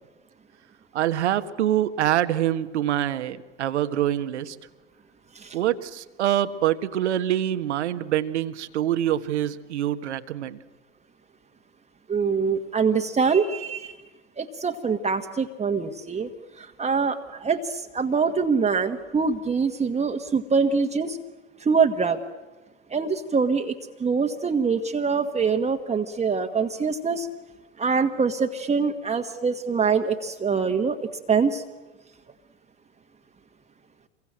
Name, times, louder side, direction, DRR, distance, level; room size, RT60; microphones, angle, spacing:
voice 1, 0.9-4.6 5.5-10.6, right 12 dB, 75° right, 11 dB, 1.5 m, -25 dB
voice 2, 12.1-14.0 14.4-16.3 16.6-21.2 21.6-22.2 22.9-23.7 24.0-27.3 27.8-31.6, right 5 dB, 20° right, 5 dB, 1.5 m, -24 dB
26.5 x 23.0 x 7.6 m, 1.3 s
hypercardioid pair, 85°, 34 cm